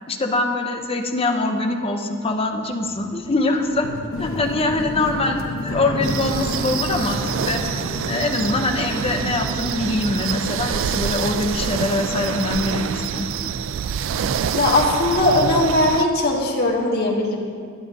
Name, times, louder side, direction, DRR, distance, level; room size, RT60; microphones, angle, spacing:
voice 1, 0.1-3.9 4.2-7.6 8.1-13.3, left 2 dB, 30° left, 3 dB, 0.7 m, -23 dB
sound 1, 2.3-12.4 12.7-13.5, left 1 dB, 80° left, 0.9 m, -32 dB
sound 2, 6.0-16.0, right 7 dB, 70° right, 0.3 m, -26 dB
voice 2, 14.5-17.4, left 2 dB, 50° left, -2 dB, 1.4 m, -19 dB
11.0 x 11.0 x 2.7 m, 2.2 s
head